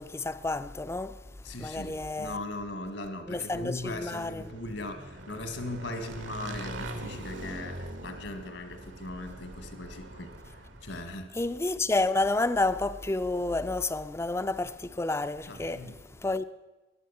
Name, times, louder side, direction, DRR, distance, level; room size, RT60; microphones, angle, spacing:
voice 1, 0.0-2.4 3.3-4.5 11.3-16.4, left 2 dB, 15° left, 0.4 m, -30 dB
voice 2, 1.5-10.3 10.8-11.3 15.5-16.0, left 2 dB, 75° left, 1.8 m, -39 dB
Motorcycle / Engine, 4.1-11.2, right 1 dB, 80° right, 1.7 m, -42 dB
14.0 x 10.5 x 7.1 m
head